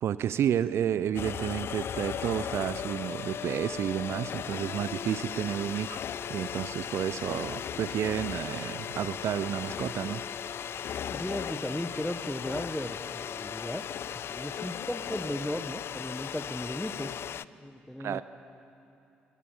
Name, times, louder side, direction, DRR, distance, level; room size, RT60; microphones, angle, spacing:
voice 1, 0.0-6.0 6.3-10.2 18.0-18.2, right 9 dB, 55° right, 15 dB, 0.6 m, -31 dB
sound 1, 1.1-17.4, left 9 dB, 50° left, 0.5 m, -37 dB
voice 2, 11.1-13.9 14.3-17.1 17.6-18.2, equal, 5° left, 11 dB, 1.4 m, -36 dB
21.5 x 21.0 x 7.3 m, 2.8 s
figure-of-eight pair, 45°, 5 cm